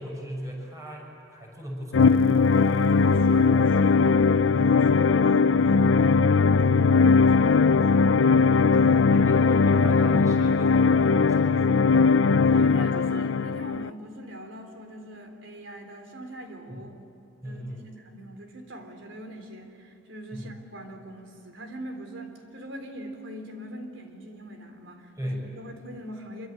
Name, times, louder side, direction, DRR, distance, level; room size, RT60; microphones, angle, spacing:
voice 1, 0.0-2.2 9.1-11.9 16.7-16.8 17.4-17.8 20.3-20.5 25.2-25.4, equal, 15° right, 0 dB, 6.5 m, -37 dB
sound 1, 1.9-13.9, left 4 dB, 90° left, 0.5 m, -19 dB
voice 2, 2.8-8.1 8.5-9.3 12.5-16.9 17.4-26.5, equal, 80° right, 5 dB, 3.7 m, -42 dB
26.0 x 24.5 x 8.9 m, 2.9 s
head